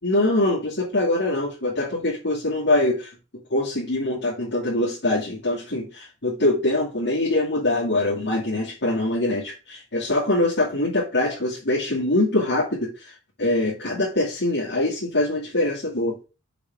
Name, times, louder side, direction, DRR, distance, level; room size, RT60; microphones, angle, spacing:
voice 1, 0.0-3.1 3.5-13.1 13.4-16.2, left 2 dB, 50° left, -7 dB, 2.5 m, -23 dB
6.9 x 6.0 x 3.7 m, 0.31 s
head